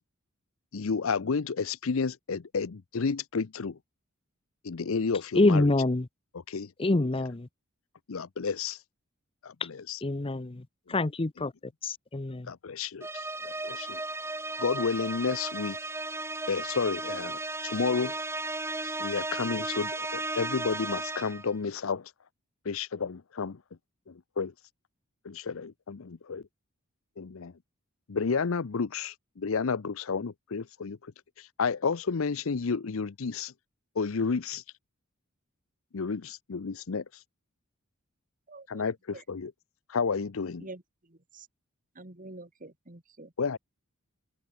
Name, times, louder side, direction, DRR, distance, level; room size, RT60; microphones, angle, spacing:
voice 1, 0.7-3.8 4.6-5.7 6.5-6.7 8.1-8.8 9.4-10.0 12.5-14.0 14.6-15.8 16.5-18.2 18.8-22.1 22.7-23.6 24.1-24.5 25.2-26.4 27.2-27.5 28.1-31.0 31.4-33.5 34.0-34.6 35.9-37.0 38.7-39.5 39.9-40.7 43.4-43.6, left 5 dB, 65° left, 0.6 m, -31 dB
voice 2, 5.3-6.1 6.8-7.5 10.0-10.6 10.9-11.5 11.8-12.5, left 2 dB, 25° left, 0.7 m, -26 dB
sound 1, 13.0-21.5, right 2 dB, 10° right, 1.2 m, -35 dB
voice 3, 38.5-38.8 39.1-39.2 40.6-41.5 41.9-43.3, right 2 dB, 40° right, 2.4 m, -47 dB
open air
head